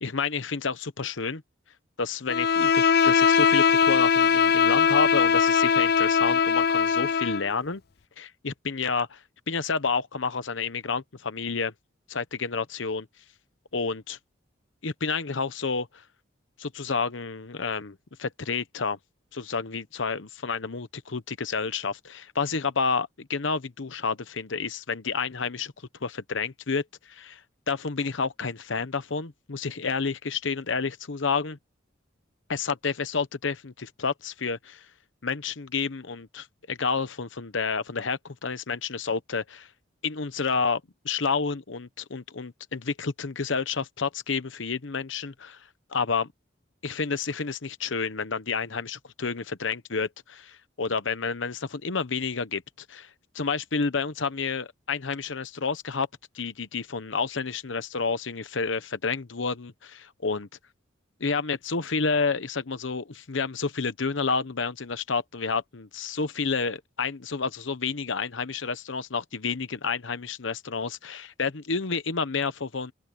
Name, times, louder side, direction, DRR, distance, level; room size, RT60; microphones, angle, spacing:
voice 1, 0.0-1.4 2.0-7.8 8.2-11.7 12.1-13.1 13.7-14.2 14.8-16.0 16.6-19.0 19.3-25.7 26.0-27.4 27.7-31.6 32.5-34.9 35.2-39.7 40.0-46.3 46.8-52.6 52.9-53.1 53.3-56.1 56.3-60.5 61.2-72.9, left 5 dB, 75° left, 0.9 m, -30 dB
Bowed string instrument, 2.3-7.5, left 6 dB, 50° left, 0.5 m, -21 dB
open air
head